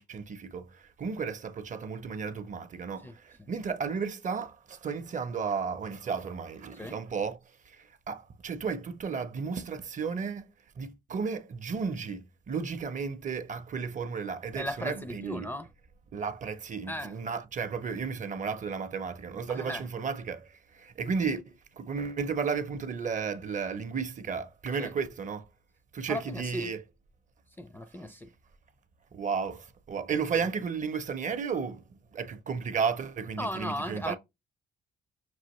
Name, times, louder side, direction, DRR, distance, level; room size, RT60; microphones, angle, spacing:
voice 1, 0.0-7.4 7.7-10.5 10.8-15.5 16.1-25.4 25.9-26.8 29.1-31.8 32.1-34.2, right 5 dB, 40° right, 0.5 m, -33 dB
voice 2, 14.6-15.7 16.9-17.1 19.5-19.8 24.8-24.9 26.1-26.7 27.6-28.3 33.4-34.1, equal, 10° left, 0.4 m, -36 dB
6.1 x 2.5 x 3.0 m
cardioid pair, 90°, 20 cm